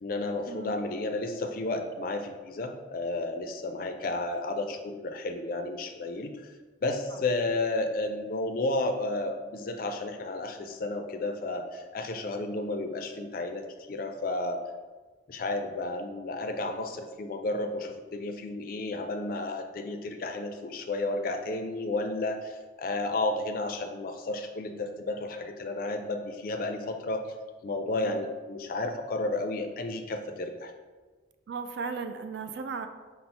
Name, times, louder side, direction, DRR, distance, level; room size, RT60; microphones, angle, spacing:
voice 1, 0.0-6.5 6.8-14.6 15.3-27.2 27.6-30.7, left 2 dB, 45° left, 6 dB, 0.3 m, -32 dB
voice 2, 31.5-32.9, right 5 dB, 65° right, 8 dB, 0.3 m, -36 dB
5.4 x 2.0 x 4.2 m, 1.4 s
head